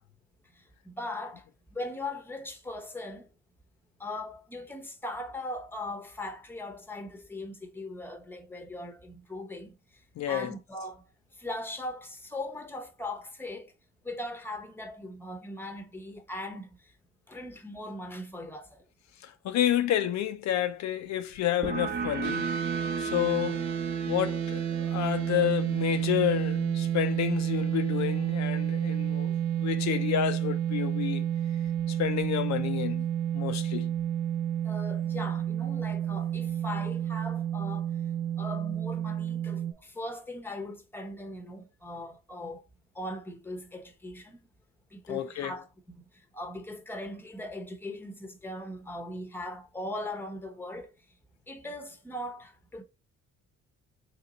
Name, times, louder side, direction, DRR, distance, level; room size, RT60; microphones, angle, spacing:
voice 1, 0.5-1.5 1.7-3.3 4.0-9.8 10.3-11.0 11.3-13.7 14.0-16.9 17.3-18.8 23.0-23.2 34.6-37.9 38.4-42.6 42.9-44.4 44.9-46.1 46.3-50.9 51.5-52.8, left 1 dB, 5° left, 0.8 m, -39 dB
voice 2, 10.2-10.5 19.2-22.5 23.0-23.6 24.1-31.2 31.9-33.1 33.3-33.9 45.1-45.6, left 11 dB, 65° left, 0.4 m, -30 dB
sound 1, 21.6-28.9, right 5 dB, 30° right, 0.9 m, -38 dB
sound 2, 22.2-39.7, right 10 dB, 75° right, 0.6 m, -30 dB
3.3 x 2.9 x 3.9 m
cardioid pair, 90°, 30 cm